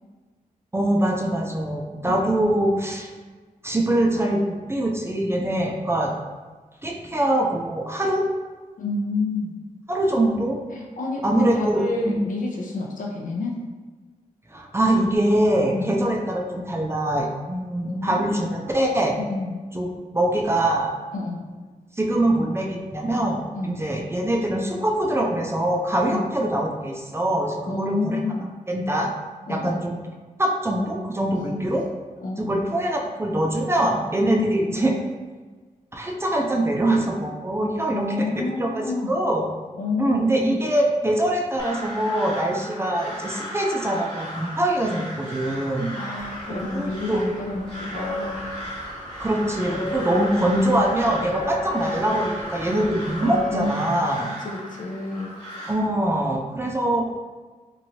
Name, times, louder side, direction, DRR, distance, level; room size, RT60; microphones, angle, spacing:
voice 1, 0.7-3.1 3.6-6.1 6.8-8.3 9.9-10.6 11.2-12.2 14.5-19.2 19.7-20.9 22.0-28.2 28.7-29.1 29.5-29.9 30.4-31.8 32.4-34.9 35.9-39.4 40.0-45.9 46.5-47.2 49.2-54.3 55.7-57.2, right 1 dB, 20° right, 0 dB, 0.4 m, -23 dB
voice 2, 8.8-9.6 10.7-13.6 15.7-16.0 17.8-18.3 19.2-19.6 21.1-21.4 23.5-23.8 26.1-26.3 27.7-28.5 29.5-29.8 31.3-31.7 32.2-32.6 34.3-34.6 37.9-39.1 39.8-40.6 45.9-48.5 53.2-53.9 54.4-55.4, left 3 dB, 65° left, -1 dB, 0.6 m, -29 dB
Crow, 41.6-55.7, equal, 35° left, 1.3 m, -36 dB
sound 1, 46.2-53.7, left 2 dB, 55° right, 0.7 m, -35 dB
3.0 x 2.6 x 2.8 m, 1.4 s
cardioid pair, 70°, 14 cm